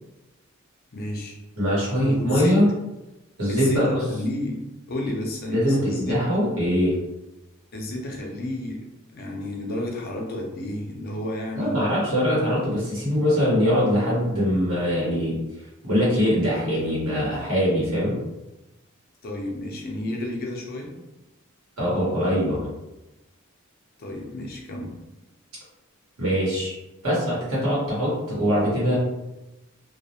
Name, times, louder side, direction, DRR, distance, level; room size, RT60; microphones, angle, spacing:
voice 1, 0.9-1.4 2.0-2.6 3.5-6.2 7.7-8.9 9.1-11.8 19.2-20.9 24.0-24.9, left 1 dB, 45° left, 0 dB, 0.5 m, -31 dB
voice 2, 1.6-2.7 3.4-4.0 5.5-7.0 11.5-15.3 15.8-18.2 21.8-22.7 26.2-26.7 27.0-29.0, equal, 80° right, -7 dB, 1.1 m, -22 dB
2.3 x 2.1 x 2.7 m, 0.97 s
head